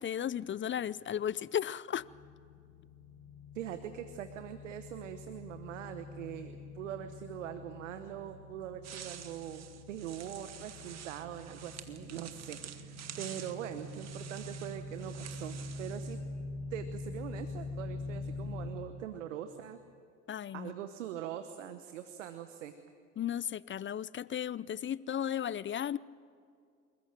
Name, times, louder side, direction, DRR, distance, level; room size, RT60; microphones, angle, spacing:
voice 1, 0.0-2.0 20.3-20.7 23.2-26.0, left 9 dB, 30° left, 21 dB, 0.6 m, -35 dB
sound 1, 2.0-18.7, left 2 dB, 80° left, 7.0 m, -45 dB
voice 2, 3.5-16.2 16.7-19.8 20.5-22.7, right 10 dB, 90° right, 9 dB, 1.1 m, -42 dB
sound 2, 8.8-16.2, right 9 dB, 45° right, 1.8 m, -49 dB
27.5 x 14.5 x 8.9 m, 2.3 s
hypercardioid pair, 65°, 37 cm